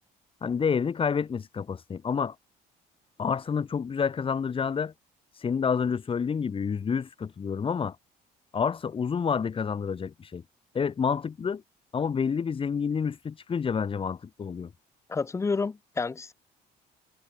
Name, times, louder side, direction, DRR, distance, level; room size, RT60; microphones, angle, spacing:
voice 1, 0.4-2.3 3.2-4.9 5.3-8.0 8.5-10.4 10.7-11.6 11.9-14.7, left 6 dB, 30° left, 1.5 m, -28 dB
voice 2, 15.1-16.3, left 4 dB, 15° left, 0.4 m, -29 dB
cardioid pair, 110°, 17 cm